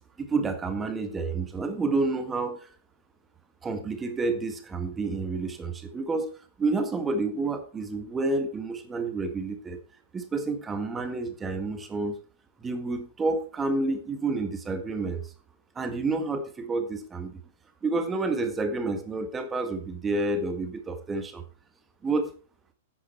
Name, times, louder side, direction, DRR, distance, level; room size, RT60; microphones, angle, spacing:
voice 1, 0.2-2.7 3.6-6.3 6.6-9.8 10.1-12.2 12.6-15.2 15.7-17.4 17.8-21.4 22.0-22.3, right 3 dB, 15° right, 8 dB, 1.7 m, -29 dB
10.5 x 8.9 x 4.5 m, 0.39 s
figure-of-eight pair, 110°, 0 cm